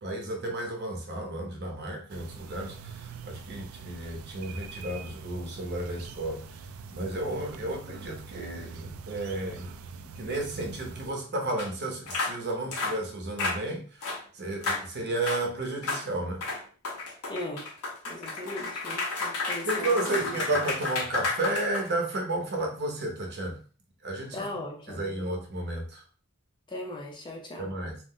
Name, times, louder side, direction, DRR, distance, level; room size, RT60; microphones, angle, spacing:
voice 1, 0.0-6.4 6.9-16.4 19.6-23.6 24.0-24.6 24.9-26.0 27.6-28.0, right 2 dB, 50° right, 0.7 m, -33 dB
sound 1, 2.1-11.1, right 5 dB, 70° right, 0.3 m, -44 dB
sound 2, 11.6-11.7 12.1-12.4 12.7-13.0 13.4-13.6 14.0-14.2 14.6-14.8 15.2-15.4 15.8-16.0 16.4-22.2, left 3 dB, 85° left, 0.8 m, -32 dB
voice 2, 17.3-17.7 18.1-20.3 24.3-25.4 26.7-27.7, left 1 dB, 20° left, 0.5 m, -38 dB
2.5 x 2.0 x 3.6 m
head